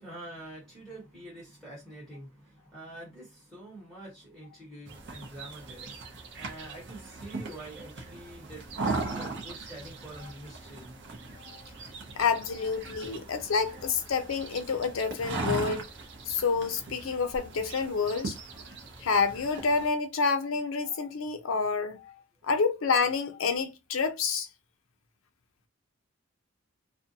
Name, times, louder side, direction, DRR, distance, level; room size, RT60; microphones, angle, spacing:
voice 1, 0.0-10.9, right 1 dB, ahead, 1.2 m, -46 dB
sound 1, 4.9-19.9, right 3 dB, 60° right, 0.6 m, -39 dB
voice 2, 12.2-15.8 16.3-18.4 19.0-22.1 22.4-24.5, left 5 dB, 85° left, 0.5 m, -28 dB
2.6 x 2.1 x 2.6 m
head